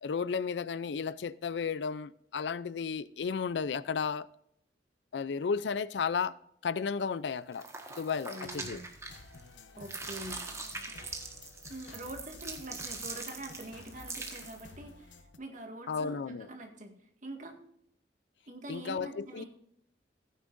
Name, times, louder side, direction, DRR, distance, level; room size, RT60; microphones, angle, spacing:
voice 1, 0.0-4.3 5.1-6.3 6.6-7.7 8.0-8.8 15.9-16.5 18.7-19.4, left 5 dB, 70° left, 0.4 m, -33 dB
sound 1, 7.5-9.5 9.8-14.7, right 3 dB, 15° right, 1.4 m, -42 dB
voice 2, 8.3-8.9 9.8-10.4 10.9-11.1 11.7-16.9 17.2-17.6 18.5-19.5, right 1 dB, 45° right, 1.9 m, -45 dB
sound 2, 8.4-10.9, equal, 45° left, 1.6 m, -57 dB
sound 3, 9.1-15.4, left 3 dB, 85° left, 0.9 m, -53 dB
15.0 x 9.5 x 2.6 m
head